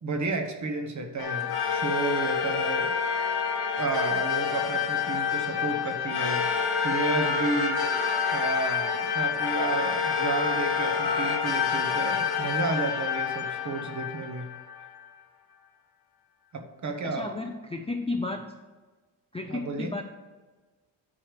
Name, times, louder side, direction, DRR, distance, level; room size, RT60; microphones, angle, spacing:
voice 1, 0.0-2.9 3.8-6.5 6.8-7.8 8.3-14.5 16.5-17.3 19.5-19.9, right 3 dB, 35° right, 5 dB, 1.1 m, -32 dB
sound 1, 1.2-15.0, left 6 dB, 50° left, 1.0 m, -28 dB
voice 2, 17.0-18.5 19.3-20.0, left 3 dB, 15° left, 4 dB, 0.3 m, -33 dB
9.9 x 4.8 x 6.6 m, 1.3 s
wide cardioid pair, 175°, 47 cm